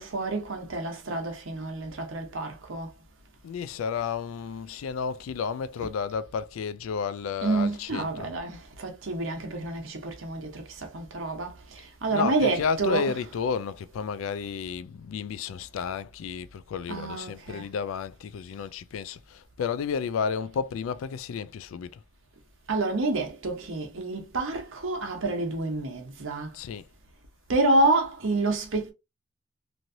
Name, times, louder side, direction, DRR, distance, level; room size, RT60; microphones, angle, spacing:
voice 1, 0.0-2.9 5.8-5.9 7.4-13.3 16.9-17.7 22.7-26.6 27.5-28.9, right 2 dB, 80° right, 0.9 m, -28 dB
voice 2, 3.4-8.3 12.1-22.0 26.5-26.8, left 6 dB, 85° left, 0.3 m, -32 dB
3.1 x 2.6 x 2.6 m
head